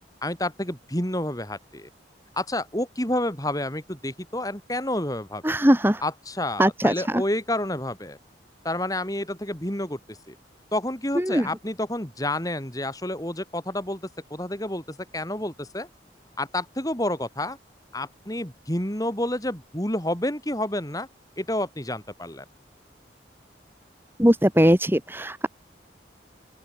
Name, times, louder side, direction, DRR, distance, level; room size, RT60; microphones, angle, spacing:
voice 1, 0.2-1.9 2.3-5.5 6.0-8.2 8.6-10.4 10.7-14.0 14.3-15.9 16.4-17.6 17.9-21.1 21.4-22.4, left 1 dB, 20° left, 4.8 m, -29 dB
voice 2, 5.4-6.0 6.6-7.2 11.2-11.5 24.2-25.5, equal, 10° right, 2.9 m, -20 dB
open air
head